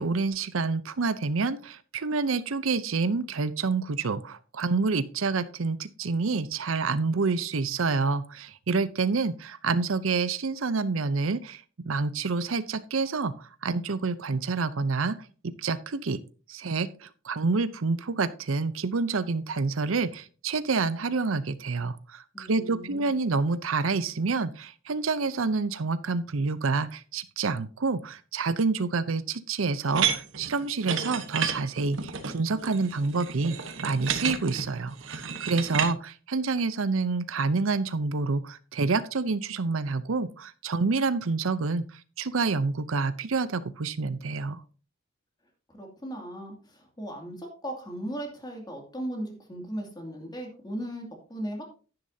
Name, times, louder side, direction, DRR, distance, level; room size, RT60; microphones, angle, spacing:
voice 1, 0.0-15.2 15.4-16.2 16.5-33.6 33.8-44.6, right 4 dB, 85° right, 15 dB, 0.7 m, -28 dB
voice 2, 22.3-23.0 45.7-51.7, right 1 dB, 20° left, 2 dB, 2.4 m, -37 dB
sound 1, 29.9-35.9, right 7 dB, 65° right, 1.3 m, -31 dB
11.0 x 10.0 x 2.8 m, 0.37 s
head